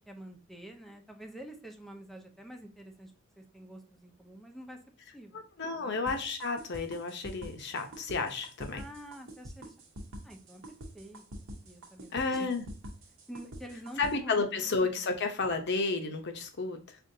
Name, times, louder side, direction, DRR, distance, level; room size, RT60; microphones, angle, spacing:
voice 1, 0.1-4.8 5.1-5.9 8.7-9.7 10.2-10.6 10.9-11.2 11.6-12.5 13.3-14.7, right 1 dB, ahead, 3 dB, 0.5 m, -48 dB
voice 2, 5.3-8.8 12.1-12.6 14.0-17.0, left 4 dB, 55° left, 6 dB, 0.7 m, -32 dB
sound 1, 6.1-14.1, equal, 75° right, 0.9 m, -45 dB
5.1 x 2.5 x 2.6 m, 0.39 s
head